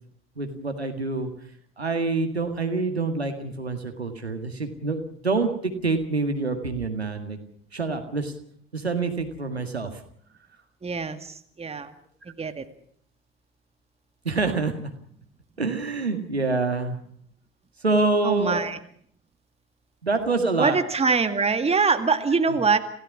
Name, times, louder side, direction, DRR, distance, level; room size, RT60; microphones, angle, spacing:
voice 1, 0.4-1.3 1.8-7.4 7.7-8.3 8.7-9.9 14.3-14.9 15.6-17.0 17.8-18.7 20.0-20.8 22.5-22.6, right 3 dB, 85° right, 6 dB, 2.0 m, -26 dB
voice 2, 10.8-11.9 12.4-12.7 18.2-18.8 20.6-22.8, right 4 dB, 20° right, 8 dB, 2.1 m, -23 dB
28.0 x 17.0 x 6.1 m, 0.63 s
figure-of-eight pair, 60°, 31 cm